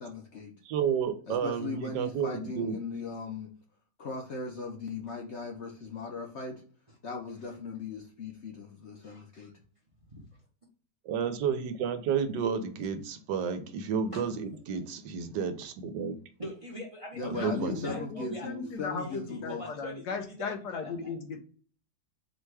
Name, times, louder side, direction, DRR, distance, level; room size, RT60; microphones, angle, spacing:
voice 1, 0.0-0.5 1.3-3.5 4.0-6.6 7.0-9.5 17.2-19.6, left 4 dB, 55° left, 0.8 m, -38 dB
voice 2, 0.6-2.8 11.1-16.2 17.3-17.9, right 7 dB, 85° right, 1.3 m, -31 dB
voice 3, 9.0-9.5 10.1-10.4 14.1-14.3 16.4-18.7 19.0-21.1, equal, 30° right, 0.6 m, -43 dB
voice 4, 17.4-21.4, left 5 dB, 75° left, 1.2 m, -37 dB
4.4 x 2.3 x 4.6 m
omnidirectional pair, 1.9 m